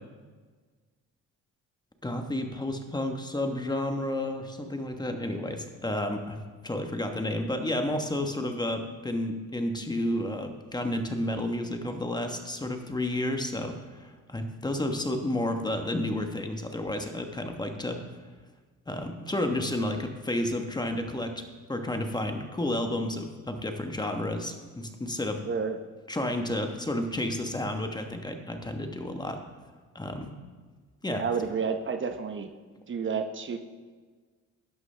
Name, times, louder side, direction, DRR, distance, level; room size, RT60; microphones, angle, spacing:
voice 1, 2.0-18.0 18.9-21.4 21.7-25.4 26.1-29.4 29.9-30.3 31.0-31.5, left 1 dB, 15° left, 5 dB, 1.2 m, -31 dB
voice 2, 25.4-25.8 31.1-32.5 32.9-33.6, right 5 dB, 40° right, 7 dB, 0.8 m, -30 dB
11.5 x 11.0 x 3.4 m, 1.4 s
cardioid pair, 90°, 30 cm